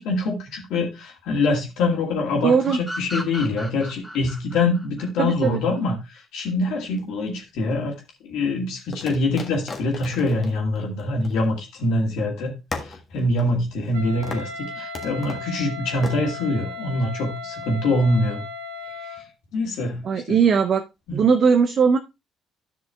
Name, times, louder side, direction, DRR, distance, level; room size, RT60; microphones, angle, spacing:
voice 1, 0.0-7.9 8.2-12.5 12.8-18.4 19.1-19.2 19.5-20.0 20.3-20.4 21.1-21.2, left 2 dB, 65° left, 1 dB, 2.2 m, -24 dB
voice 2, 2.4-2.8 5.2-5.6 20.0-20.8 21.1-22.0, right 6 dB, 50° right, 7 dB, 0.6 m, -19 dB
sound 1, 2.6-6.0, equal, ahead, 1.8 m, -35 dB
sound 2, 6.8-7.7 8.9-11.9 12.2-12.3 12.7-14.0 14.2-14.6 14.9-15.5 16.0-16.2, left 4 dB, 40° left, 1.4 m, -37 dB
Wind instrument woodwind instrument, 13.9-19.3, left 3 dB, 80° right, 0.9 m, -36 dB
12.5 x 6.0 x 2.3 m, 0.24 s
figure-of-eight pair, 50°, 0 cm